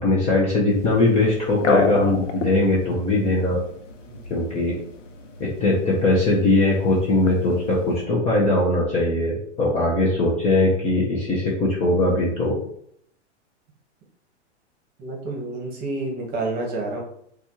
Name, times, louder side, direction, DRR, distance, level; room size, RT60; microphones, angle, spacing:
voice 1, 0.0-3.6 4.3-4.7 5.4-12.6, left 2 dB, 20° left, -5 dB, 0.5 m, -20 dB
sound 1, 0.7-8.0, left 4 dB, 85° left, 0.7 m, -31 dB
voice 2, 15.0-17.0, right 2 dB, 25° right, -1 dB, 1.2 m, -29 dB
4.1 x 2.4 x 2.8 m, 0.68 s
hypercardioid pair, 135°, 36 cm